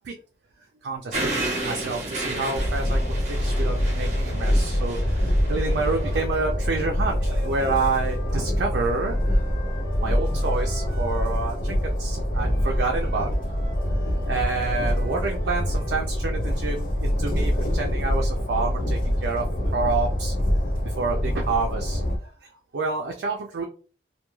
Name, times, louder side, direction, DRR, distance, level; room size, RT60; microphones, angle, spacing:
voice 1, 0.8-9.5 10.0-13.3 13.9-20.3 20.8-23.7, right 3 dB, 85° right, 1 dB, 0.4 m, -29 dB
sound 1, 1.1-6.2, right 2 dB, 40° right, 0.6 m, -32 dB
Train, 2.5-22.2, equal, 50° left, 0.5 m, -25 dB
Wind instrument woodwind instrument, 7.8-11.6 12.5-16.1, left 1 dB, 85° left, 1.0 m, -45 dB
2.3 x 2.2 x 3.0 m, 0.39 s
head